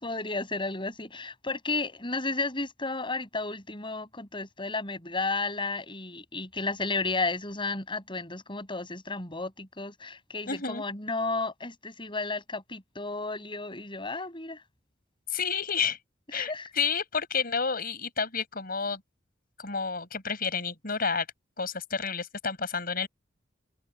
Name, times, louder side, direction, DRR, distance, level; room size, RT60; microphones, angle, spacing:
voice 1, 0.0-14.6 16.3-16.7, left 3 dB, 25° left, 7.8 m, -33 dB
voice 2, 10.5-10.8 15.3-16.0 16.3-19.0 19.6-21.3 21.6-23.1, left 5 dB, 50° left, 6.0 m, -30 dB
open air
head